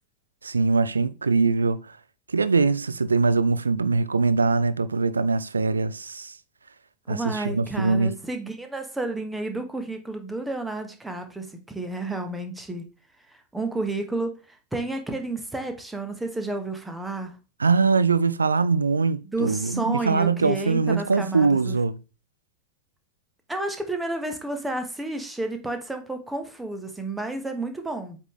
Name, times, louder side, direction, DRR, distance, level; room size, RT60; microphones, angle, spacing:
voice 1, 0.4-1.8 2.3-6.3 7.1-8.1 17.6-22.0, right 4 dB, 75° right, 0.4 m, -22 dB
voice 2, 7.1-12.8 13.5-17.3 19.3-21.8 23.5-28.2, right 2 dB, 5° right, 1.1 m, -31 dB
8.1 x 3.7 x 3.1 m
figure-of-eight pair, 90°, 0 cm